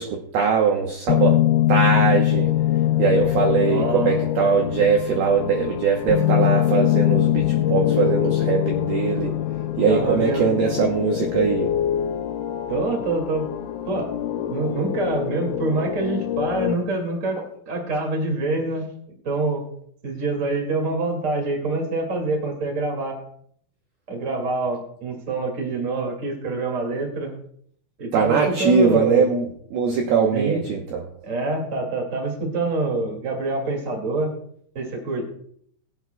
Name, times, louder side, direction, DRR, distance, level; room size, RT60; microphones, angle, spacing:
voice 1, 0.0-1.4 1.7-2.5 3.0-9.3 9.8-11.7 28.1-29.5 29.7-31.0, right 6 dB, 90° right, 1 dB, 2.2 m, -21 dB
sound 1, 1.1-16.7, left 13 dB, 80° left, 3.3 m, -23 dB
voice 2, 3.6-4.5 9.9-10.5 12.7-13.5 13.8-14.1 14.5-18.9 19.2-19.6 20.0-23.2 24.1-27.3 28.0-29.3 30.3-30.6 31.2-34.3 34.7-35.2, right 2 dB, 55° right, 0 dB, 0.8 m, -26 dB
22.0 x 8.0 x 2.3 m, 0.65 s
omnidirectional pair, 5.9 m